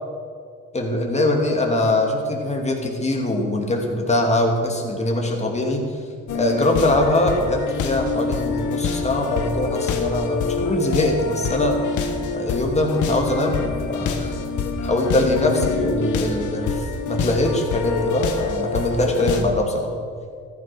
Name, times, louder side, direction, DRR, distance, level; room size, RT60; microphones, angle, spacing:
voice 1, 0.7-5.8 6.3-11.8 12.3-14.4 14.8-19.9, left 1 dB, 20° left, 1 dB, 2.6 m, -22 dB
sound 1, 6.3-19.4, left 4 dB, 80° left, 1.5 m, -26 dB
14.5 x 11.0 x 6.3 m, 2.1 s
cardioid pair, 90°, 30 cm